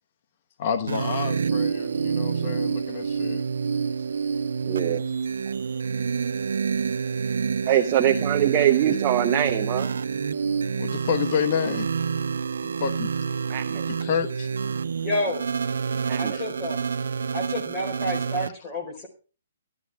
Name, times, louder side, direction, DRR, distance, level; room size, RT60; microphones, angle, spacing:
voice 1, 0.6-3.4 10.8-11.9 12.8-13.1 13.9-14.5 16.3-16.4, left 7 dB, 40° left, 8 dB, 1.2 m, -28 dB
sound 1, 0.9-18.5, right 6 dB, 90° right, 0.7 m, -28 dB
voice 2, 4.7-5.0 7.7-9.9 13.5-13.9 16.0-16.4, right 11 dB, 30° right, 4 dB, 0.8 m, -23 dB
voice 3, 15.0-15.4 16.2-16.9 17.3-19.1, left 1 dB, 20° left, 2 dB, 4.3 m, -30 dB
14.0 x 12.5 x 3.5 m, 0.34 s
hypercardioid pair, 160°, 0 cm